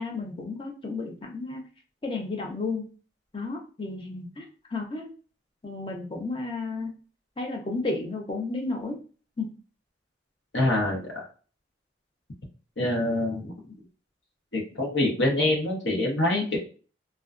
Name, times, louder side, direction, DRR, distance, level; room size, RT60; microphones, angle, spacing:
voice 1, 0.0-1.7 2.0-2.8 3.3-4.4 4.7-5.1 5.6-6.9 7.4-9.0 9.4-9.5, left 3 dB, 30° left, 1 dB, 0.5 m, -32 dB
voice 2, 10.5-11.2 12.8-13.5 14.5-16.6, left 1 dB, 70° left, 0 dB, 0.8 m, -25 dB
2.4 x 2.2 x 2.4 m, 0.38 s
head